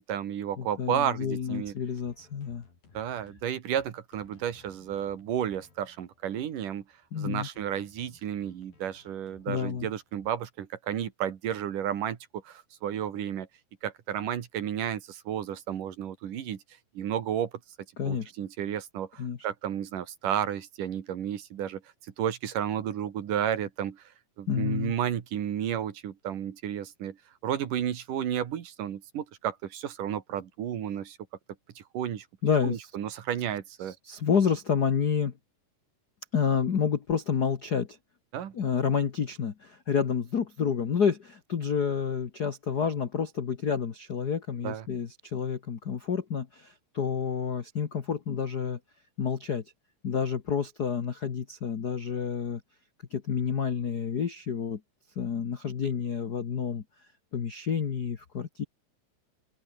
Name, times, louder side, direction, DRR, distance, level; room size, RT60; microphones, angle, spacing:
voice 1, 0.0-1.7 2.9-6.8 7.2-12.2 12.4-13.5 13.8-16.6 16.9-17.5 18.0-21.8 22.2-24.0 24.4-27.2 27.4-31.2 31.8-32.3 32.6-34.0 38.3-38.5 44.6-44.8, right 10 dB, 70° right, 3.4 m, -32 dB
voice 2, 0.6-2.6 7.1-7.5 9.5-9.9 18.0-18.3 19.2-19.4 24.5-24.9 32.4-32.9 33.8-35.3 36.3-38.0 38.5-48.8 49.2-49.6 50.0-52.6 53.1-54.8 55.1-56.8 57.3-58.6, left 7 dB, 65° left, 1.0 m, -29 dB
sound 1, 1.4-10.3, left 4 dB, 85° left, 8.0 m, -60 dB
open air
omnidirectional pair, 4.0 m